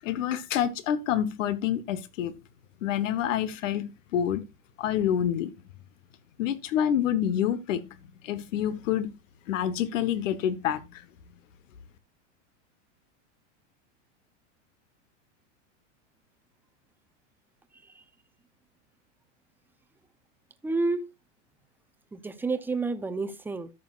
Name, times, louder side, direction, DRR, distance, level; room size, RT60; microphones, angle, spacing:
voice 1, 0.0-2.3 2.8-4.4 4.8-5.5 6.4-7.8 8.2-9.1 9.5-11.0, left 10 dB, 85° left, 1.2 m, -27 dB
voice 2, 20.6-21.0 22.1-23.7, right 3 dB, 5° right, 0.5 m, -30 dB
13.5 x 6.4 x 2.4 m
supercardioid pair, 140°, 37 cm